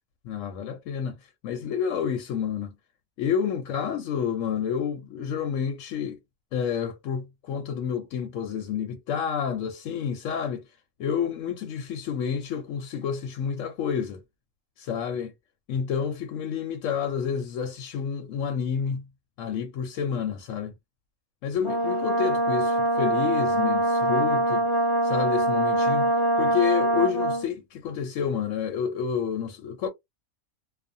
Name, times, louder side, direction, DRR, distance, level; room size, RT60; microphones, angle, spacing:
voice 1, 0.2-1.2 1.4-2.7 3.2-6.2 6.5-10.6 11.0-14.2 14.8-15.3 15.7-19.1 19.4-20.7 21.4-24.6 25.0-26.1 26.4-29.9, left 7 dB, 75° left, 0.9 m, -29 dB
Brass instrument, 21.6-27.5, right 1 dB, 35° left, 0.5 m, -23 dB
2.4 x 2.3 x 2.6 m
omnidirectional pair, 1.4 m